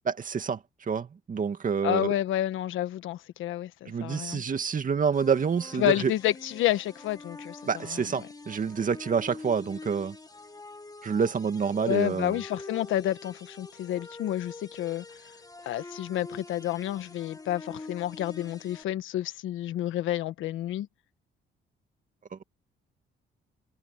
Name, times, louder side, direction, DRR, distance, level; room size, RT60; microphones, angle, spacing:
voice 1, 0.0-2.1 3.9-6.1 7.7-10.2 11.0-12.4 22.3-22.4, right 6 dB, 40° right, 2.2 m, -28 dB
voice 2, 1.8-4.4 5.8-7.6 7.9-8.0 11.8-15.0 15.6-20.9, left 13 dB, 85° left, 1.4 m, -29 dB
sound 1, 5.1-18.8, left 3 dB, 20° left, 2.1 m, -45 dB
cardioid pair, 90°, 20 cm